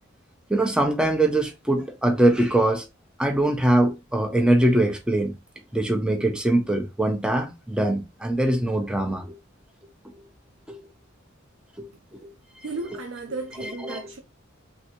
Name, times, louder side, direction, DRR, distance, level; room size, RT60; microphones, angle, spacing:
voice 1, 0.5-2.9 3.2-5.3 5.7-9.4 10.2-10.3 10.7-10.9 11.8-11.9 12.2-12.3 12.6-13.0 13.3-14.1, right 1 dB, 5° right, 0.4 m, -23 dB
voice 2, 12.6-14.2, right 3 dB, 80° right, 0.5 m, -34 dB
3.4 x 2.4 x 2.8 m
head